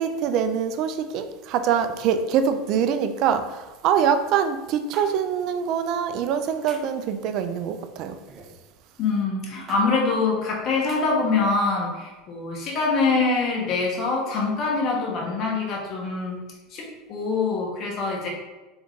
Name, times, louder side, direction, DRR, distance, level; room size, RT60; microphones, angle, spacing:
voice 1, 0.0-8.2, right 7 dB, 55° right, 0.4 m, -24 dB
sound 1, 4.9-5.1 6.7-7.0 8.3-8.6 9.7-9.8 10.9-11.0, right 3 dB, 40° right, 0.9 m, -41 dB
voice 2, 9.0-16.4 16.7-18.3, left 4 dB, 45° left, 1.3 m, -24 dB
3.9 x 3.6 x 3.6 m
supercardioid pair, 110°, 0 cm